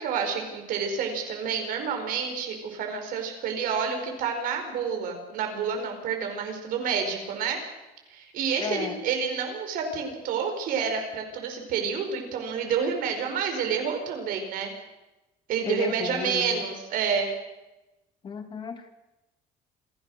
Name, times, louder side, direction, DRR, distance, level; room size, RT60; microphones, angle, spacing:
voice 1, 0.0-7.6 8.1-14.7 15.5-17.3, right 6 dB, 65° right, 4 dB, 4.8 m, -29 dB
voice 2, 8.6-9.0 15.7-16.6 18.2-18.9, left 5 dB, 30° left, 8 dB, 1.8 m, -33 dB
27.0 x 16.5 x 6.4 m, 1.0 s
cardioid pair, 180°, 16 cm